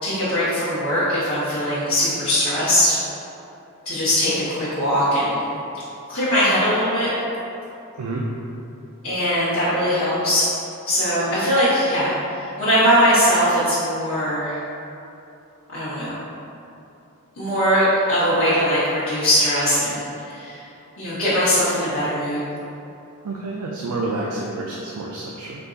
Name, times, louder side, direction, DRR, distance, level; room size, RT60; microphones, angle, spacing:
voice 1, 0.0-3.0 3.8-5.5 6.1-7.1 9.0-10.5 10.9-14.6 15.7-16.2 17.4-20.6 21.0-22.4, equal, 70° left, -13 dB, 1.2 m, -20 dB
voice 2, 23.2-25.6, right 2 dB, 85° right, -2 dB, 0.4 m, -29 dB
4.5 x 2.4 x 3.9 m, 2.8 s
head